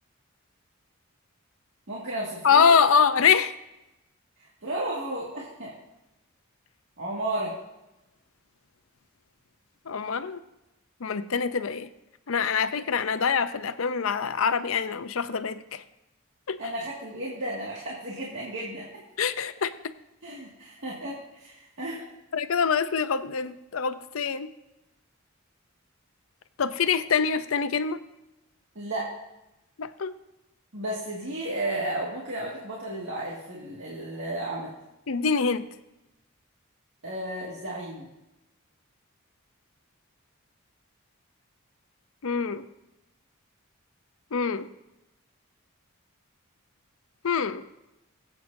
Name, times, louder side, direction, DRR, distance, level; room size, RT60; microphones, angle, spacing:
voice 1, 1.9-2.7 4.6-5.7 7.0-7.6 16.6-18.9 20.2-22.1 28.8-29.1 30.7-34.7 37.0-38.1, right 1 dB, 60° right, -6 dB, 2.1 m, -33 dB
voice 2, 2.4-3.5 9.9-10.4 11.0-11.9 12.3-15.8 16.5-16.6 19.2-19.7 22.3-24.5 26.6-28.0 29.8-30.2 35.1-35.6 42.2-42.7 44.3-44.7 47.2-47.6, left 6 dB, 75° left, 12 dB, 0.6 m, -24 dB
20.5 x 8.2 x 2.7 m, 0.95 s
head